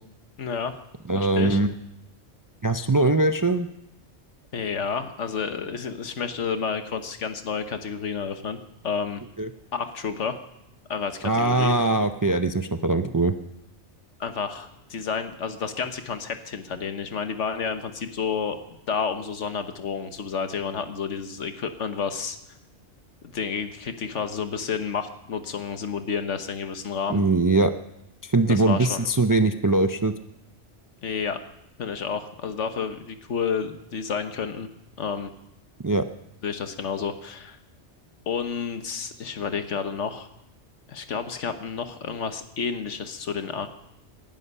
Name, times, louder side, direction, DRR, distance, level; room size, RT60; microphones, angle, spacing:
voice 1, 0.4-0.7 1.1-1.6 4.5-8.6 8.8-9.2 9.7-10.4 10.9-11.8 14.2-18.6 18.9-22.4 23.3-27.2 28.5-29.1 31.0-31.4 31.8-34.7 35.0-35.3 36.4-37.6 38.3-40.3 40.9-43.7, left 6 dB, 85° left, 8 dB, 1.5 m, -30 dB
voice 2, 1.1-1.7 2.6-3.7 9.4-9.5 11.2-13.3 27.1-27.7 28.2-30.2 35.8-36.1, right 2 dB, 30° right, 9 dB, 0.3 m, -21 dB
18.5 x 11.5 x 5.5 m, 0.83 s
omnidirectional pair, 1.2 m